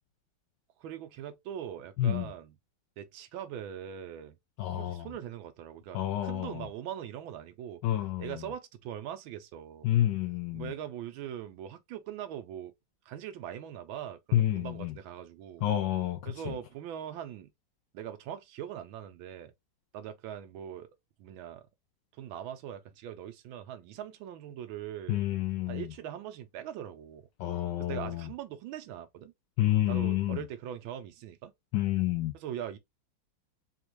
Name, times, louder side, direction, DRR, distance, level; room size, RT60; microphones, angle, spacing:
voice 1, 0.8-2.6 3.0-4.4 4.7-7.8 8.2-9.9 10.5-12.7 13.1-15.7 16.3-17.5 17.9-19.5 19.9-21.7 22.1-25.2 25.7-27.3 27.8-29.3 29.9-31.5 32.3-32.8, right 10 dB, 85° right, 1.5 m, -41 dB
voice 2, 2.0-2.3 4.6-5.1 5.9-6.7 7.8-8.3 9.8-10.7 14.3-14.9 15.6-16.5 25.1-25.9 27.4-28.3 29.6-30.4 31.7-32.3, left 13 dB, 75° left, 1.2 m, -29 dB
4.3 x 2.4 x 3.0 m
omnidirectional pair, 2.2 m